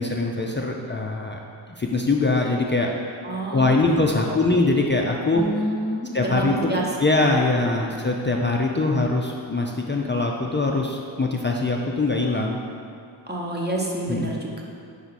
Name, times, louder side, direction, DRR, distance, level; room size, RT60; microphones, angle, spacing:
voice 1, 0.0-1.4 1.8-2.9 3.5-5.4 6.1-6.7 7.0-12.6 14.1-14.4, left 3 dB, 25° left, 0 dB, 0.3 m, -22 dB
voice 2, 3.2-4.5 5.3-6.9 7.3-7.4 7.8-7.9 13.3-14.6, right 1 dB, 20° right, -2 dB, 0.9 m, -29 dB
5.5 x 4.5 x 4.1 m, 2.3 s
wide cardioid pair, 80°, 46 cm